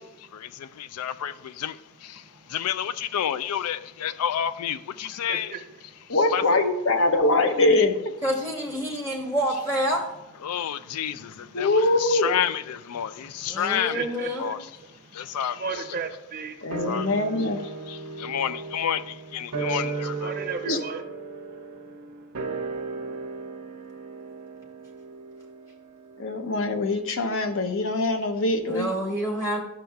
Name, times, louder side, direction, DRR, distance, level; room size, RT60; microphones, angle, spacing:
voice 1, 0.8-5.5 6.3-6.4 10.4-11.7 12.0-14.0 14.4-14.6 15.1-15.8 16.9-17.1 17.9-20.3, left 9 dB, 85° left, 0.4 m, -30 dB
voice 2, 2.1-2.6 4.1-4.2 5.0-6.1 8.8-9.3 10.4-11.7 12.9-16.7 18.0-18.3 19.5-19.7 20.0-22.3, right 5 dB, 40° right, 0.6 m, -39 dB
voice 3, 6.1-8.0 11.5-12.3 16.6-17.6 20.6-20.8 26.2-28.9, left 2 dB, 60° left, 0.7 m, -23 dB
voice 4, 8.2-10.1 13.5-14.5 28.7-29.6, equal, 15° left, 0.8 m, -27 dB
sound 1, 16.7-27.3 27.6-27.7, right 4 dB, 85° right, 0.8 m, -36 dB
11.5 x 6.3 x 2.3 m
head